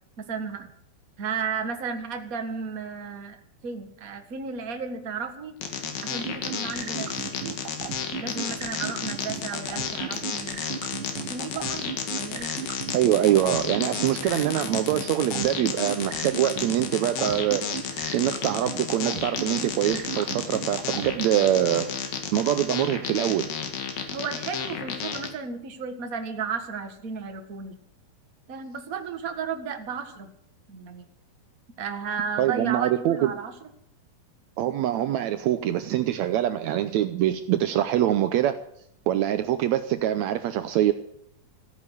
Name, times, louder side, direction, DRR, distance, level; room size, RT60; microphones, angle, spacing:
voice 1, 0.2-0.6 1.2-3.4 3.6-5.5 6.0-7.1 7.4-7.6 8.2-10.6 11.2-12.5 24.1-27.8 28.5-30.3 30.7-31.0 31.8-33.5, right 5 dB, 40° right, 6 dB, 1.3 m, -33 dB
sound 1, 5.6-25.3, left 7 dB, 90° left, 3.8 m, -32 dB
sound 2, 6.3-21.1, right 10 dB, 70° right, 2.4 m, -35 dB
voice 2, 12.9-23.5 32.4-33.3 34.6-38.5 39.1-40.9, right 12 dB, 90° right, 10 dB, 1.6 m, -24 dB
15.5 x 9.7 x 8.4 m, 0.73 s
omnidirectional pair, 4.1 m